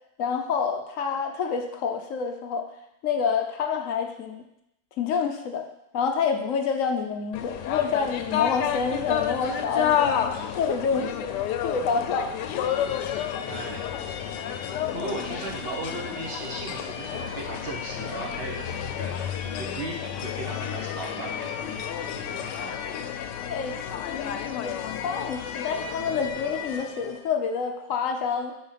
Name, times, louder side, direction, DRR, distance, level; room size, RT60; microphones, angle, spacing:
voice 1, 0.2-2.6 3.0-4.4 5.0-5.6 5.9-10.2 10.5-11.3 11.6-12.3 23.5-28.5, left 6 dB, 60° left, 5 dB, 0.9 m, -28 dB
sound 1, 7.3-27.2, left 9 dB, 90° left, 1.2 m, -31 dB
voice 2, 13.5-13.9 14.9-22.8, right 2 dB, 45° right, -1 dB, 1.1 m, -37 dB
4.9 x 4.4 x 5.6 m, 0.81 s
omnidirectional pair, 1.8 m